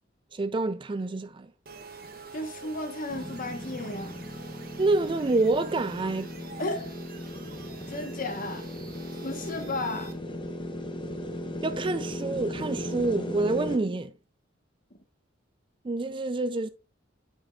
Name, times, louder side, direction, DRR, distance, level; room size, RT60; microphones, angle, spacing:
voice 1, 0.3-1.5 4.8-6.3 11.6-14.1 15.8-16.7, right 2 dB, 25° right, 0.4 m, -27 dB
sound 1, 1.6-10.1, right 5 dB, 50° right, 1.2 m, -47 dB
voice 2, 2.3-4.2 6.6-7.0 7.9-8.7 9.2-10.2, left 2 dB, 45° left, 1.1 m, -34 dB
sound 2, 3.1-13.8, equal, 25° left, 0.9 m, -37 dB
8.9 x 5.4 x 2.4 m
head